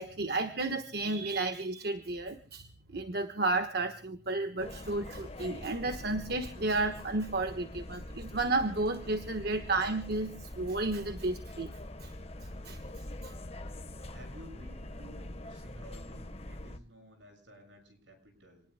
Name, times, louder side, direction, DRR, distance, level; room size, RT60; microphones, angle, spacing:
voice 1, 0.0-12.1 12.6-12.8 13.2-13.3, right 2 dB, 60° right, 7 dB, 1.3 m, -32 dB
sound 1, 4.6-16.8, left 1 dB, 35° left, 1.2 m, -44 dB
voice 2, 14.1-18.6, equal, 80° right, 5 dB, 7.2 m, -54 dB
28.0 x 20.0 x 2.2 m, 0.41 s
head